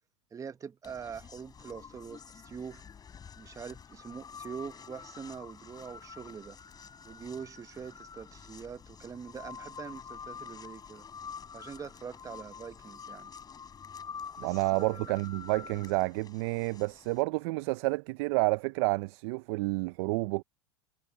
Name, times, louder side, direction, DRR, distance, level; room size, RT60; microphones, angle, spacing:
voice 1, 0.3-2.8 3.3-6.6 7.0-11.1 11.5-13.3 14.4-15.1, right 6 dB, 20° right, 1.1 m, -44 dB
sound 1, 0.8-17.2, left 6 dB, 25° left, 5.7 m, -48 dB
voice 2, 14.4-20.4, right 25 dB, 60° right, 0.6 m, -30 dB
hypercardioid pair, 100°, 15 cm